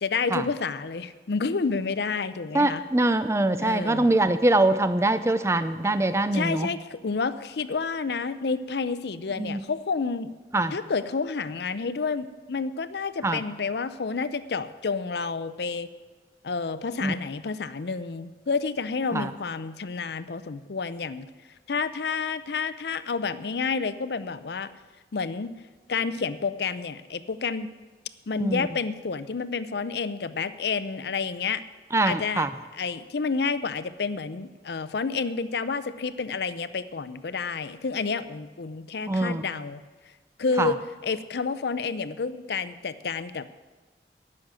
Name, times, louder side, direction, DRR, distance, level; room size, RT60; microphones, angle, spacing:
voice 1, 0.0-2.8 3.6-4.1 6.3-10.3 10.7-15.9 16.4-21.3 21.7-24.7 25.1-25.5 25.9-27.7 28.3-31.6 32.0-32.5 32.8-39.8 40.4-40.8 41.0-43.5, left 4 dB, 70° left, 14 dB, 0.5 m, -29 dB
voice 2, 2.5-6.7 9.4-9.6 10.5-10.8 13.2-13.4 17.0-17.1 19.1-19.3 28.4-28.7 31.9-32.5 39.1-39.4 40.6-40.7, right 2 dB, 15° right, 11 dB, 0.5 m, -23 dB
11.5 x 6.5 x 8.8 m, 1.3 s
head